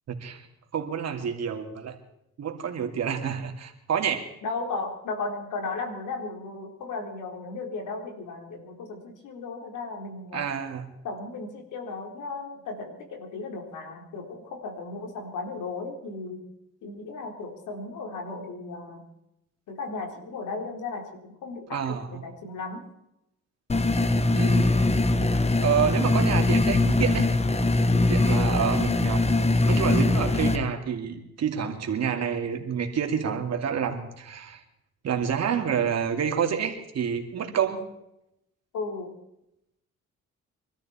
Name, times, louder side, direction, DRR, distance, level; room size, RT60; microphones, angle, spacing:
voice 1, 0.1-0.4 0.7-2.0 2.4-4.3 10.3-10.9 21.7-22.2 24.3-24.8 25.6-27.3 28.1-29.3 29.7-34.6 35.0-37.9, right 7 dB, 60° right, 4 dB, 2.6 m, -28 dB
voice 2, 4.4-10.5 11.0-16.4 16.8-19.0 19.7-22.8 38.7-39.1, left 3 dB, 80° left, 3 dB, 4.0 m, -35 dB
sound 1, 23.7-30.6, left 2 dB, 20° left, 1.2 m, -22 dB
24.5 x 13.0 x 4.4 m, 0.82 s
cardioid pair, 90°, 30 cm